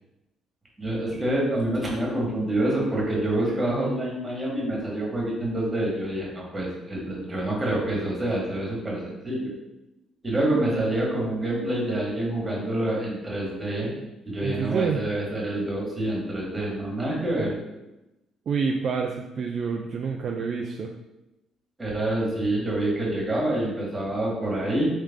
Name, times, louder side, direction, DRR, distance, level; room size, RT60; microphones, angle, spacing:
voice 1, 0.8-9.5 10.2-13.9 14.2-17.5 21.8-24.9, right 1 dB, 20° right, -3 dB, 1.5 m, -27 dB
voice 2, 14.4-15.0 18.5-20.9, right 5 dB, 55° right, 2 dB, 0.3 m, -28 dB
3.3 x 3.2 x 3.6 m, 0.96 s
cardioid pair, 90°, 0 cm